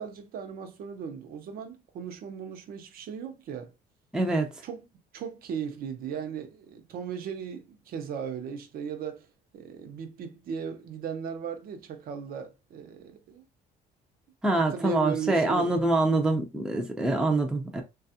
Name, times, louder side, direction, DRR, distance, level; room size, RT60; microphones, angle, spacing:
voice 1, 0.0-3.7 4.6-4.9 5.1-9.3 9.5-13.4 14.5-15.7, right 6 dB, 60° right, 0.6 m, -37 dB
voice 2, 4.1-4.5 14.4-17.8, right 2 dB, 5° right, 0.5 m, -25 dB
3.3 x 2.3 x 2.6 m
cardioid pair, 110°, 17 cm